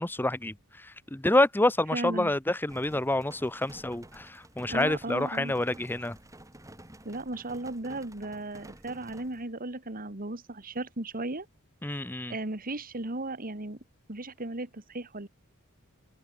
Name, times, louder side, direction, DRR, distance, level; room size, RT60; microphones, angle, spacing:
voice 1, 0.0-6.2 11.8-12.4, left 1 dB, 10° left, 0.8 m, -28 dB
voice 2, 1.9-2.3 4.7-5.5 7.0-11.5 12.3-13.8 14.1-15.3, right 2 dB, 40° right, 2.4 m, -36 dB
sound 1, 2.7-9.5, right 1 dB, 15° right, 6.5 m, -51 dB
head